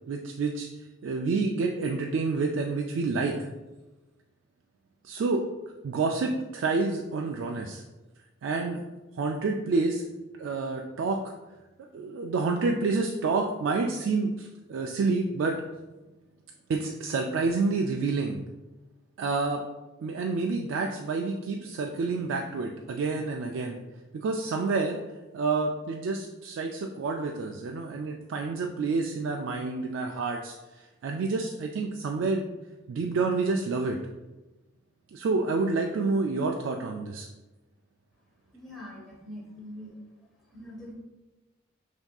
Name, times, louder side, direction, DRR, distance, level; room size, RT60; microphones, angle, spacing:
voice 1, 0.1-0.7 1.0-3.5 5.0-5.4 5.8-7.8 8.4-8.8 9.2-10.1 10.4-11.2 11.9-15.6 16.7-18.4 19.2-19.6 20.0-23.8 24.1-25.0 25.3-30.6 31.0-32.4 32.9-34.0 35.1-37.3, right 3 dB, 75° right, 2 dB, 0.3 m, -28 dB
voice 2, 38.5-39.9 40.5-40.9, left 1 dB, ahead, -6 dB, 1.1 m, -43 dB
5.7 x 2.7 x 2.3 m, 1.1 s
head